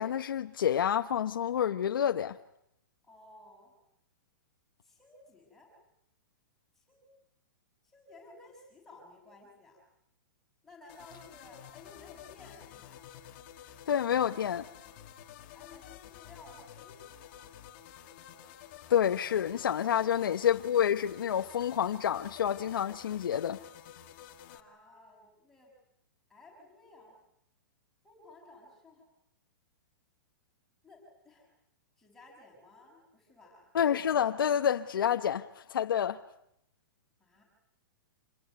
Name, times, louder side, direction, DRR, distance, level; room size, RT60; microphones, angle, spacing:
voice 1, 0.0-2.4 13.9-14.7 18.9-23.6 33.7-36.2, left 9 dB, 80° left, 1.0 m, -28 dB
voice 2, 3.0-3.7 4.8-5.7 6.7-7.1 7.8-9.8 10.6-13.1 15.5-17.4 24.5-25.7 26.3-27.2 28.0-29.1 30.8-31.5 32.0-33.7 37.2-37.4, left 2 dB, 5° left, 6.5 m, -55 dB
sound 1, 10.9-24.6, left 10 dB, 30° left, 2.0 m, -51 dB
27.5 x 22.5 x 9.5 m
hypercardioid pair, 175°, 11 cm